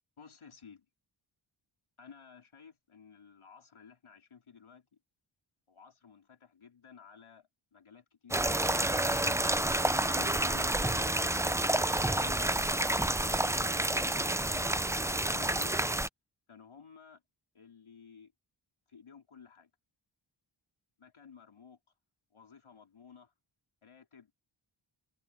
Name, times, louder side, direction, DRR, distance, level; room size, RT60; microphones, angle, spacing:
voice 1, 0.2-0.9 2.0-4.9 5.7-9.4 10.0-11.8 12.1-15.8 16.5-17.2 17.5-18.3 18.9-19.7 21.0-21.8 22.3-23.3 23.8-24.3, left 6 dB, 80° left, 4.1 m, -54 dB
sound 1, 8.3-16.1, right 1 dB, 5° right, 0.4 m, -29 dB
wide cardioid pair, 80°, 48 cm